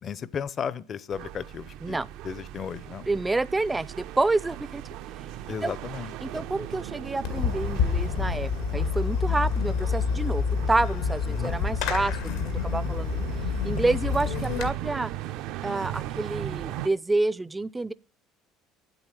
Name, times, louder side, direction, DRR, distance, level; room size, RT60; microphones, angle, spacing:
voice 1, 0.0-3.1 5.5-6.7 11.3-11.6, left 7 dB, 40° left, 0.8 m, -35 dB
sound 1, 1.1-16.9, right 12 dB, 70° right, 0.7 m, -38 dB
voice 2, 3.1-4.8 5.6-5.7 6.2-13.2 13.6-15.1 15.6-17.9, right 2 dB, 10° right, 0.5 m, -28 dB
Fireworks, 7.2-14.7, left 6 dB, 80° left, 2.0 m, -28 dB
9.3 x 8.0 x 9.2 m
cardioid pair, 120°, 0 cm